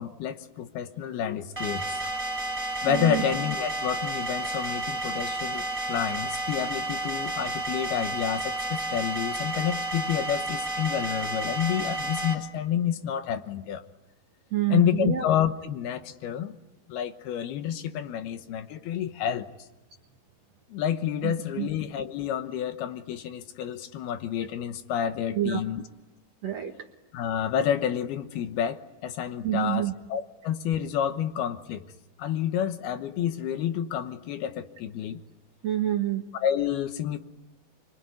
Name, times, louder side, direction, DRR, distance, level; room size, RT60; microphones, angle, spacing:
voice 1, 0.0-2.0 2.8-13.8 14.7-16.5 16.9-19.5 20.7-25.8 27.1-31.9 32.2-35.2 36.4-37.2, left 9 dB, 75° left, 9 dB, 3.0 m, -29 dB
sound 1, 1.6-12.3, right 2 dB, 5° right, 3.7 m, -31 dB
voice 2, 2.9-3.2 14.5-15.3 21.2-21.7 25.4-25.6 26.4-26.9 29.4-29.9 35.6-36.2, right 12 dB, 55° right, 4 dB, 2.1 m, -28 dB
25.0 x 25.0 x 9.6 m, 1.0 s
omnidirectional pair, 4.7 m